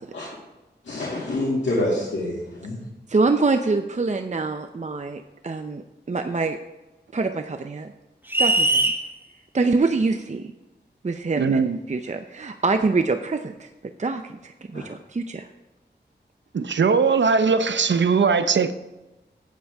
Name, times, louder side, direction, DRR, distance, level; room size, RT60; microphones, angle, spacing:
voice 1, 0.8-2.8 14.7-14.8, left 1 dB, 80° left, 2.3 m, -26 dB
voice 2, 3.1-6.6 7.1-7.9 8.4-8.9 9.5-10.5 11.0-11.6 11.9-13.7 14.0-15.5, right 3 dB, 40° right, 0.6 m, -25 dB
sound 1, 8.3-9.0, right 1 dB, 10° right, 1.2 m, -20 dB
voice 3, 11.4-11.8 16.5-18.7, right 5 dB, 80° right, 0.7 m, -20 dB
12.5 x 8.7 x 3.5 m
wide cardioid pair, 55°, 18 cm